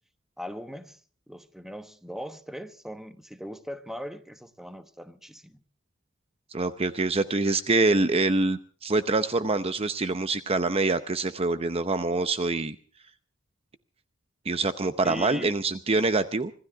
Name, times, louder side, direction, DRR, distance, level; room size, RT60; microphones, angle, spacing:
voice 1, 0.4-1.0 1.3-5.6 15.0-15.5, equal, ahead, 1.2 m, -39 dB
voice 2, 6.5-12.8 14.5-16.5, right 3 dB, 30° right, 0.8 m, -25 dB
25.5 x 16.0 x 3.5 m
head